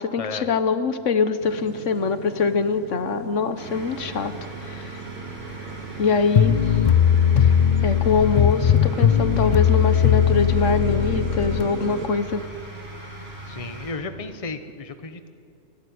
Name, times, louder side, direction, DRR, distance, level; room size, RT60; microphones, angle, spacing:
voice 1, 0.0-4.3 4.6-5.0 6.0-6.8 7.4-7.5 7.8-12.5, left 5 dB, 70° left, 11 dB, 1.3 m, -23 dB
sound 1, 1.4-12.1, right 7 dB, 85° right, 1.3 m, -37 dB
sound 2, 3.6-13.9, right 1 dB, 65° right, 7.1 m, -39 dB
sound 3, 6.4-11.7, left 8 dB, 50° left, 0.6 m, -19 dB
voice 2, 13.5-15.3, left 4 dB, 30° left, 9 dB, 1.1 m, -33 dB
29.5 x 12.5 x 9.5 m, 2.5 s
omnidirectional pair, 1.3 m